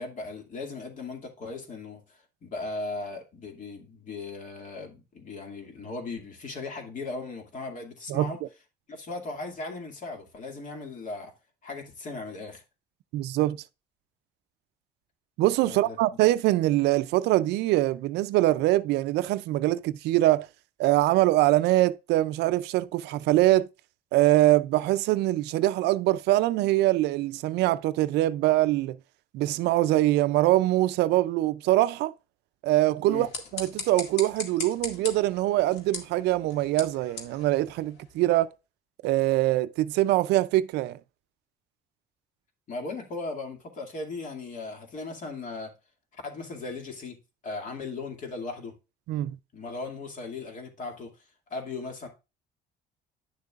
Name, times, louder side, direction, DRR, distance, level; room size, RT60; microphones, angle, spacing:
voice 1, 0.0-8.4 8.9-11.3 11.6-12.6 15.6-16.0 33.0-33.3 42.7-45.7 46.1-47.2 47.4-48.7 49.5-51.1 51.5-52.1, left 3 dB, 50° left, 2.3 m, -37 dB
voice 2, 13.1-13.6 15.4-20.5 20.8-23.7 24.1-29.0 29.3-32.1 32.6-38.5 39.0-41.0 49.1-49.4, right 16 dB, 85° right, 0.5 m, -23 dB
sound 1, 33.1-38.3, left 5 dB, 80° left, 2.0 m, -40 dB
10.5 x 6.7 x 2.4 m
cardioid pair, 110°, 17 cm